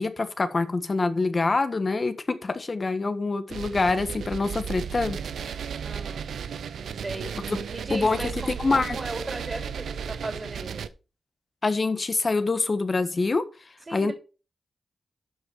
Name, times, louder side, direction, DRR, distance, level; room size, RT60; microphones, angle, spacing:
voice 1, 0.0-5.2 7.5-7.6 7.9-9.0 11.6-13.4 13.9-14.1, left 3 dB, 40° left, 1.4 m, -25 dB
sound 1, 3.5-10.9, right 7 dB, 90° right, 0.7 m, -34 dB
voice 2, 5.8-6.2 7.0-7.3 7.7-10.9 13.9-14.1, right 2 dB, 35° right, 3.3 m, -36 dB
12.5 x 5.2 x 4.6 m
cardioid pair, 70°, 0 cm